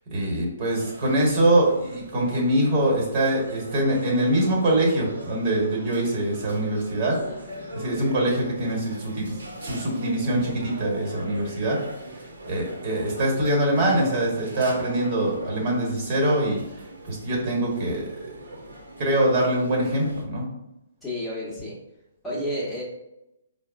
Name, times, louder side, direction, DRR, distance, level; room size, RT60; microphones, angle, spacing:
voice 1, 0.1-7.1 7.7-9.2 9.6-11.8 12.4-16.6 17.0-18.0 19.0-20.4, right 1 dB, 40° right, -2 dB, 1.3 m, -23 dB
sound 1, 0.7-20.2, right 1 dB, 80° right, 0.7 m, -40 dB
voice 2, 7.2-7.7 21.0-21.8 22.2-22.8, equal, 10° left, -7 dB, 1.0 m, -32 dB
4.6 x 2.1 x 2.5 m, 0.87 s
figure-of-eight pair, 130°, 0 cm